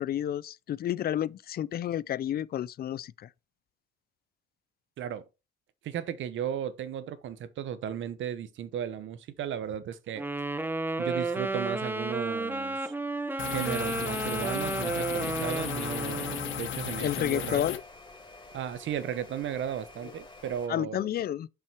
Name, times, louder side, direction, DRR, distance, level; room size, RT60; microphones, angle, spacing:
voice 1, 0.0-3.3 17.0-17.8 20.0-20.1 20.7-21.5, left 11 dB, 50° left, 0.4 m, -31 dB
voice 2, 5.8-10.2 11.0-12.9 13.5-17.7 18.5-21.1, right 9 dB, 75° right, 1.0 m, -35 dB
Wind instrument woodwind instrument, 10.2-16.6, right 2 dB, 10° right, 0.8 m, -32 dB
sound 1, 13.4-17.8, left 9 dB, 75° left, 1.3 m, -35 dB
sound 2, 15.2-20.7, left 2 dB, 20° left, 3.1 m, -50 dB
7.6 x 5.7 x 4.7 m
cardioid pair, 90°, 20 cm